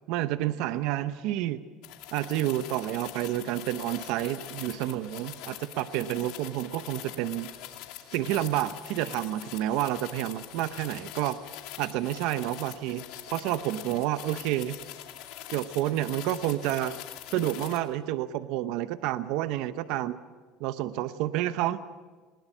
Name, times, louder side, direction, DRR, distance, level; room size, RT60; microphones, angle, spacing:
voice 1, 0.1-1.6 2.1-7.5 8.1-11.4 11.8-14.8 15.5-17.0 17.3-20.2 20.6-21.8, right 13 dB, 75° right, 12 dB, 0.8 m, -29 dB
sound 1, 1.8-17.8, left 13 dB, 75° left, 2.4 m, -43 dB
20.5 x 20.0 x 7.3 m, 1.4 s
cardioid pair, 125°, 0 cm